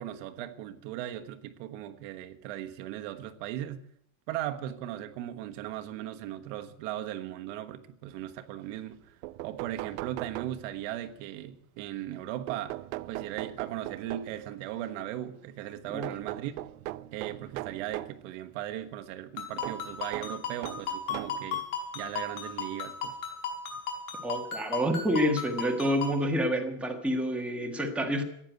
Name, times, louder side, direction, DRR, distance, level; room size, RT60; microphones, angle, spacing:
voice 1, 0.0-3.8 4.3-9.2 9.4-12.8 13.1-16.5 17.1-21.6 21.9-23.1, right 12 dB, 60° right, 1.4 m, -38 dB
sound 1, 8.9-9.0 9.2-11.0 12.5-14.5 16.0-18.2 19.6-21.5 22.4-22.5 23.8-23.9 24.2-24.3, right 18 dB, 80° right, 0.7 m, -39 dB
Ringtone, 19.4-26.2, left 5 dB, 65° left, 5.4 m, -36 dB
voice 2, 24.2-28.2, equal, 5° right, 1.5 m, -28 dB
15.0 x 9.9 x 9.2 m
cardioid pair, 170°, 41 cm